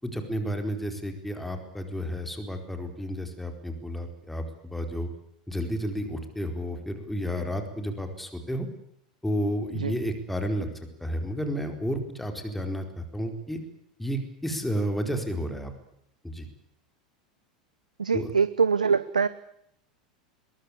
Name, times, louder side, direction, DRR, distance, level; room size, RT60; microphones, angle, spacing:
voice 1, 0.0-5.1 5.5-8.7 9.2-10.7 11.0-13.6 14.0-15.7 16.2-16.5 18.1-18.3, equal, 5° left, 6 dB, 4.4 m, -31 dB
voice 2, 18.0-19.3, right 5 dB, 80° right, 16 dB, 0.9 m, -23 dB
22.5 x 22.5 x 8.5 m, 0.72 s
figure-of-eight pair, 85°, 4 cm